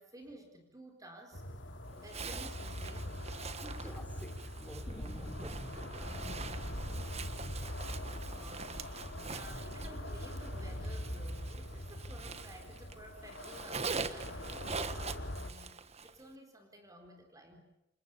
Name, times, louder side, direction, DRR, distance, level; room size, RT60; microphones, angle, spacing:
voice 1, 0.0-1.4 1.9-3.3 8.3-17.6, right 1 dB, 20° right, 4 dB, 4.2 m, -54 dB
sound 1, 1.3-15.5, left 1 dB, 75° left, 3.0 m, -43 dB
Zipper (clothing), 2.0-13.0 13.2-16.2, right 5 dB, 35° right, 1.5 m, -44 dB
voice 2, 3.5-5.9, equal, 10° left, 4 dB, 5.2 m, -51 dB
sound 2, 4.9-13.7 14.0-14.1 14.3-15.4 15.6-15.7, equal, 30° left, 3.7 m, -48 dB
29.5 x 28.0 x 7.0 m, 0.90 s
head